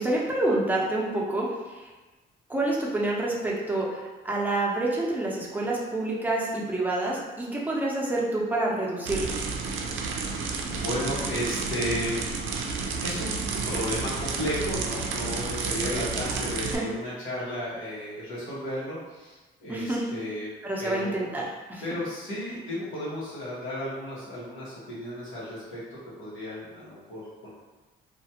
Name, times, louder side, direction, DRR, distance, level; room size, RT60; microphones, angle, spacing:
voice 1, 0.0-1.9 2.5-9.3 16.0-16.1 16.7-16.9 19.7-20.0 20.6-21.4 21.7-21.8, right 2 dB, 10° right, -4 dB, 0.6 m, -28 dB
sound 1, 9.1-16.8, right 4 dB, 80° right, 0.4 m, -31 dB
voice 2, 10.2-12.2 13.0-13.3 13.6-20.5 20.8-21.2 21.8-27.5, equal, 90° left, -8 dB, 1.1 m, -34 dB
2.5 x 2.3 x 2.8 m, 1.2 s
cardioid pair, 90°, 20 cm